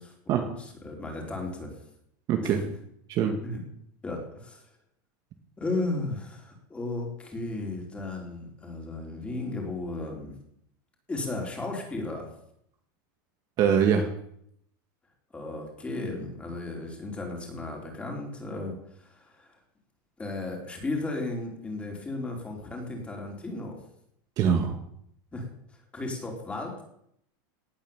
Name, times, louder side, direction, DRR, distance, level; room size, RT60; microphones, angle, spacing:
voice 1, 0.0-1.7 2.4-2.6 3.4-3.6 4.0-4.6 5.6-10.4 11.1-12.3 15.3-19.5 20.2-23.8 25.3-25.5 25.9-26.8, left 2 dB, 10° left, 1 dB, 4.4 m, -35 dB
voice 2, 2.3-2.6 3.1-3.4 13.6-14.1 24.4-24.7, right 7 dB, 35° right, 4 dB, 2.0 m, -23 dB
18.5 x 10.0 x 7.4 m, 0.71 s
supercardioid pair, 160°, 11 cm